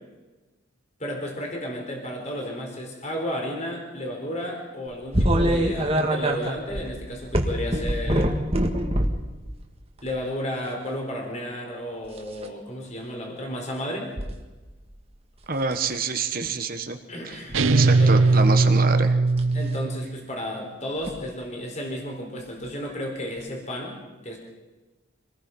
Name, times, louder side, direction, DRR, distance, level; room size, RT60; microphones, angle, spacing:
voice 1, 1.0-8.4 10.0-14.1 17.1-18.1 19.5-23.9 24.2-24.4, equal, 35° left, 1 dB, 4.0 m, -33 dB
sound 1, 5.1-9.3 10.0-10.3 12.1-12.4 14.2-14.3 14.8-15.2 15.6-15.9 17.3-17.7 19.3-19.5 21.0-21.1 22.6-22.7 23.4-23.5, right 1 dB, 30° right, 2.0 m, -24 dB
voice 2, 15.5-17.0 17.2-17.4 17.7-19.2, right 4 dB, 45° right, 7 dB, 1.3 m, -27 dB
sound 2, 17.5-20.1, right 3 dB, 80° right, 0.8 m, -19 dB
26.0 x 19.5 x 5.5 m, 1.2 s
head